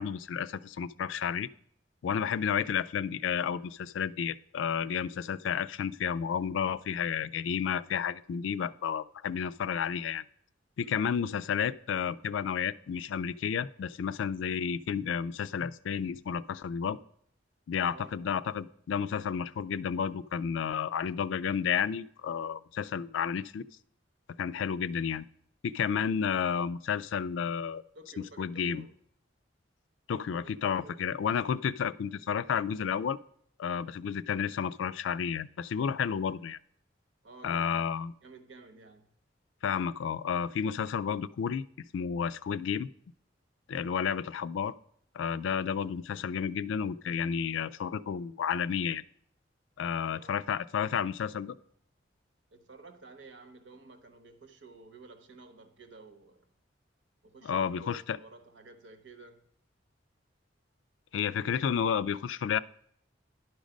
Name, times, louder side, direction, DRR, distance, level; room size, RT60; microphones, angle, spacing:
voice 1, 0.0-1.5 2.0-10.2 10.8-17.0 17.7-23.6 24.4-25.3 25.6-27.8 28.4-28.8 30.1-33.2 33.6-36.6 37.4-38.1 39.6-41.6 41.9-42.9 43.7-44.7 45.1-49.0 49.8-51.6 57.4-58.2 61.1-62.6, left 7 dB, 80° left, 0.3 m, -31 dB
voice 2, 17.8-18.2 27.9-28.9 30.3-31.0 37.2-37.8 38.2-39.1 50.0-50.4 52.5-56.5 57.2-59.5, right 3 dB, 75° right, 1.1 m, -52 dB
11.0 x 5.2 x 5.1 m
head